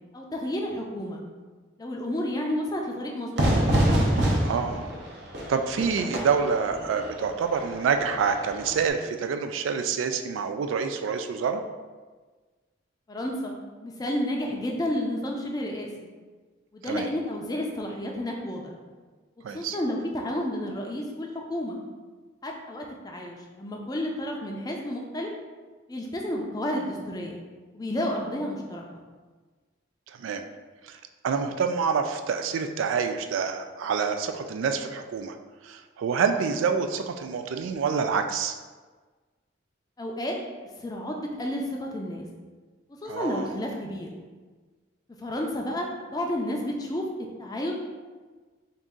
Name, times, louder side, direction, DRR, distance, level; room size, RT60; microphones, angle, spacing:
voice 1, 0.1-1.2 1.8-3.6 13.1-15.9 16.7-18.7 19.5-21.8 22.4-25.3 25.9-27.4 27.7-28.8 40.0-40.3 40.8-42.3 42.9-44.1 45.2-47.0 47.4-47.7, left 1 dB, 20° left, 0 dB, 0.4 m, -31 dB
Fire / Fireworks, 3.4-8.9, right 1 dB, 60° right, 0.7 m, -26 dB
voice 2, 4.2-4.9 5.5-11.6 16.8-17.1 19.4-19.8 30.1-30.4 30.8-31.0 31.2-35.4 35.6-38.6 43.1-43.5, right 6 dB, 90° right, 8 dB, 0.3 m, -27 dB
4.0 x 2.5 x 3.6 m, 1.4 s
head